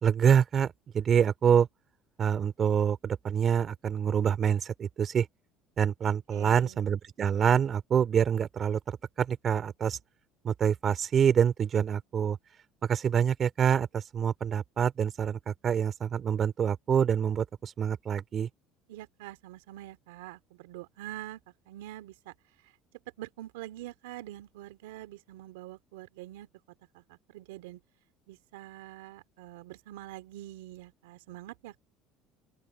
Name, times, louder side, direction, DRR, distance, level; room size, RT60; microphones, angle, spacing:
voice 1, 0.0-1.7 2.2-5.3 5.8-10.0 10.4-12.4 12.8-18.5, right 8 dB, 45° right, 2.8 m, -26 dB
voice 2, 6.3-6.9 18.9-21.4 21.7-22.3 22.6-22.7 23.2-26.5 26.9-27.8 28.3-31.8, right 15 dB, 85° right, 2.8 m, -45 dB
open air
supercardioid pair, 80°, 0 cm